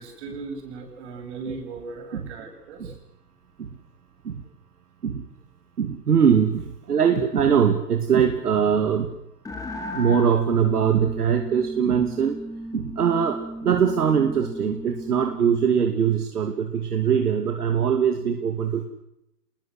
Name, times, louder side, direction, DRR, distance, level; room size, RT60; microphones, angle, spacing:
voice 1, 0.0-2.9, right 4 dB, 45° right, 3 dB, 7.8 m, -37 dB
voice 2, 5.8-9.1 9.9-12.4 12.7-18.8, right 7 dB, 75° right, 6 dB, 2.6 m, -22 dB
sound 1, 9.4-15.8, equal, 5° left, 2.6 m, -35 dB
27.0 x 21.0 x 8.1 m, 0.82 s
hypercardioid pair, 125°, 47 cm